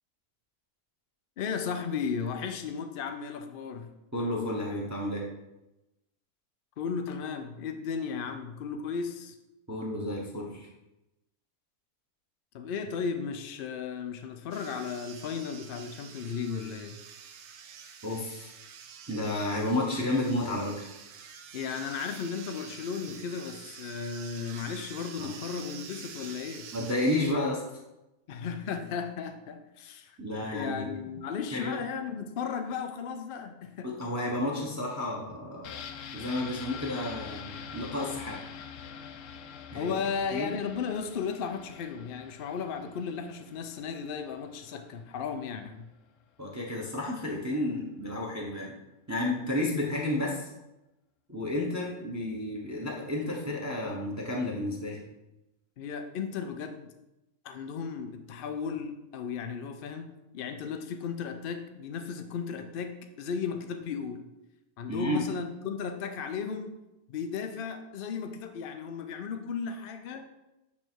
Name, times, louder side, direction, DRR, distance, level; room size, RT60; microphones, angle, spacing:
voice 1, 1.4-3.9 6.8-9.3 12.5-17.0 21.5-26.7 28.3-30.2 30.5-34.0 39.7-45.9 55.8-56.9 57.4-64.3 64.8-66.7 67.1-70.3, left 6 dB, 90° left, 7 dB, 0.4 m, -35 dB
voice 2, 4.1-5.2 9.7-10.7 18.0-18.5 19.1-20.9 25.2-25.3 26.7-27.6 30.2-31.2 31.5-31.8 33.8-35.8 36.1-38.4 39.7-39.9 40.3-40.6 46.4-48.8 49.1-50.5 51.3-55.0 64.9-65.2, left 1 dB, 15° right, -2 dB, 0.8 m, -31 dB
sound 1, 14.5-27.3, right 7 dB, 90° right, 1.2 m, -47 dB
sound 2, 35.6-45.3 45.6-45.7, left 7 dB, 65° left, 0.9 m, -45 dB
8.4 x 3.3 x 4.5 m, 0.96 s
omnidirectional pair, 1.6 m